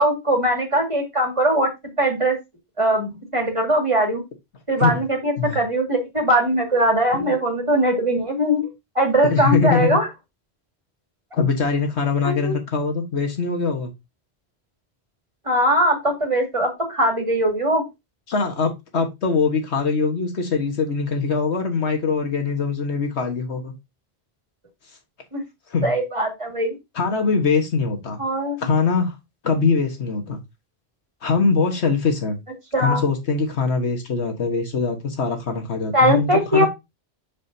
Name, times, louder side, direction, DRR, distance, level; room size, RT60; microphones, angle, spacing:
voice 1, 0.0-1.7 2.0-2.4 2.8-4.2 4.7-8.6 9.0-10.1 12.2-12.6 15.5-17.8 25.3-25.4 25.8-26.7 28.2-28.7 32.7-33.0 35.9-36.7, right 1 dB, 30° right, 2.3 m, -20 dB
voice 2, 9.2-10.0 11.3-13.9 18.3-23.7 25.7-25.9 26.9-28.2 28.6-29.2 29.4-30.4 31.2-32.4 32.8-36.7, left 4 dB, 80° left, 1.7 m, -22 dB
7.0 x 6.4 x 2.7 m
omnidirectional pair, 1.1 m